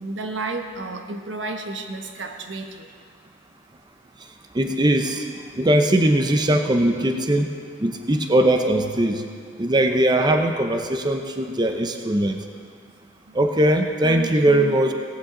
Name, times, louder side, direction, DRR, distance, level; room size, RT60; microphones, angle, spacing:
voice 1, 0.0-2.9 12.6-12.7 13.3-13.4 14.0-14.8, right 3 dB, 85° right, 5 dB, 1.2 m, -32 dB
voice 2, 4.5-5.3 5.5-7.5 7.8-9.2 9.6-12.4 13.3-14.9, right 1 dB, 25° right, 5 dB, 0.7 m, -20 dB
18.0 x 15.0 x 3.9 m, 2.1 s
head